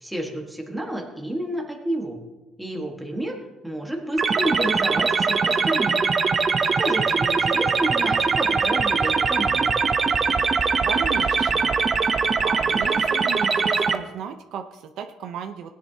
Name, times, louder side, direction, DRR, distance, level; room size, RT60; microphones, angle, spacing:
voice 1, 0.0-2.2 2.6-3.4 3.6-6.0 6.7-9.8, right 1 dB, ahead, 1 dB, 1.5 m, -30 dB
sound 1, 4.2-14.0, right 5 dB, 25° right, 0.6 m, -22 dB
voice 2, 10.8-11.8 12.4-15.7, right 7 dB, 60° right, 6 dB, 0.7 m, -34 dB
19.5 x 10.0 x 2.8 m, 1.1 s
cardioid pair, 175°, 0 cm